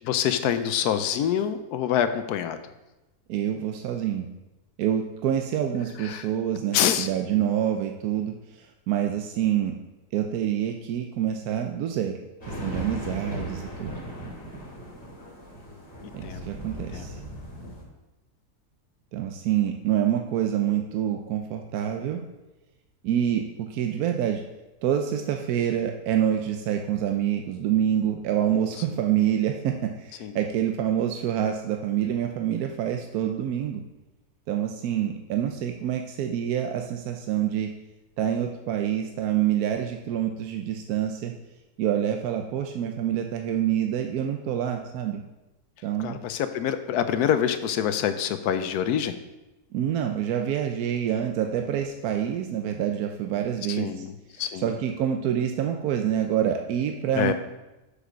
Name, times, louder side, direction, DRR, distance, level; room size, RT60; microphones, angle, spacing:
voice 1, 0.0-2.6 6.0-6.3 6.7-7.1 15.7-15.8 16.2-16.5 16.9-17.1 28.9-29.0 30.2-30.4 46.0-49.1 53.7-54.8 57.1-57.3, left 9 dB, 85° left, 10 dB, 1.1 m, -26 dB
voice 2, 3.3-4.3 4.8-9.7 10.1-12.1 12.5-13.9 16.1-17.2 19.1-22.2 23.0-24.4 24.8-33.8 34.5-37.7 38.2-41.3 41.8-45.2 45.8-46.2 49.7-54.0 54.6-57.3, right 10 dB, 75° right, 3 dB, 1.1 m, -27 dB
sound 1, 12.4-17.8, equal, 45° left, 2.4 m, -37 dB
6.6 x 4.9 x 6.1 m, 1.0 s
omnidirectional pair, 1.6 m